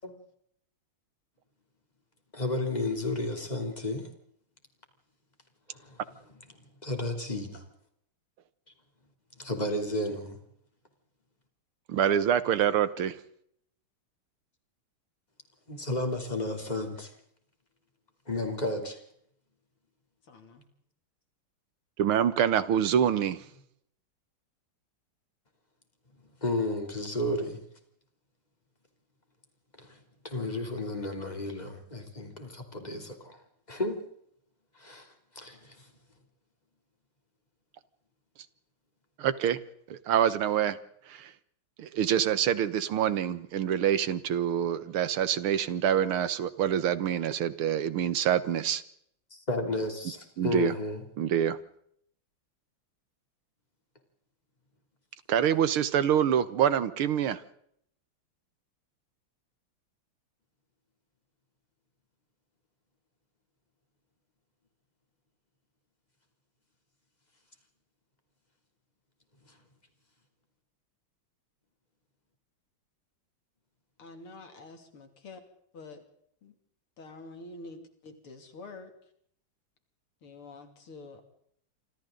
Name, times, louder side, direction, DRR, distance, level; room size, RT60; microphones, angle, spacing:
voice 1, 2.3-4.1 5.7-6.0 6.5-7.6 9.4-10.4 15.7-17.1 18.3-19.0 26.4-27.6 29.8-33.4 33.7-34.0 34.7-35.1 35.3-35.9 49.3-51.0, left 2 dB, 20° left, 3.3 m, -33 dB
voice 2, 11.9-13.2 22.0-23.4 39.2-39.6 39.9-40.8 41.1-41.3 41.8-48.8 50.4-50.7 51.2-51.6 55.3-57.4, right 9 dB, 80° right, 2.0 m, -26 dB
voice 3, 20.2-20.7 74.0-75.4 75.7-76.0 76.4-76.5 77.0-78.9 80.2-81.2, left 3 dB, 80° left, 3.6 m, -47 dB
27.5 x 26.0 x 3.9 m
omnidirectional pair, 2.4 m